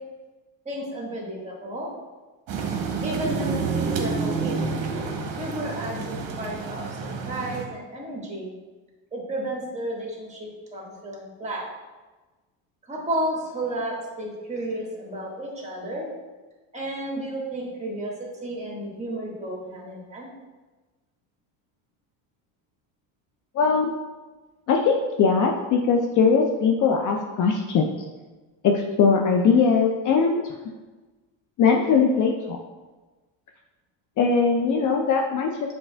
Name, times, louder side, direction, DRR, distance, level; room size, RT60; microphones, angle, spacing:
voice 1, 0.6-1.9 3.0-4.7 5.4-8.5 9.1-11.7 12.9-16.1 16.7-20.3, right 1 dB, 15° right, -3 dB, 1.5 m, -32 dB
sound 1, 2.5-7.6, right 4 dB, 50° right, 1.0 m, -29 dB
voice 2, 23.6-23.9 24.7-27.9 28.6-30.4 31.6-32.6 34.2-35.5, left 5 dB, 45° left, 2 dB, 0.5 m, -20 dB
6.9 x 3.2 x 2.2 m, 1.2 s
supercardioid pair, 100°, 44 cm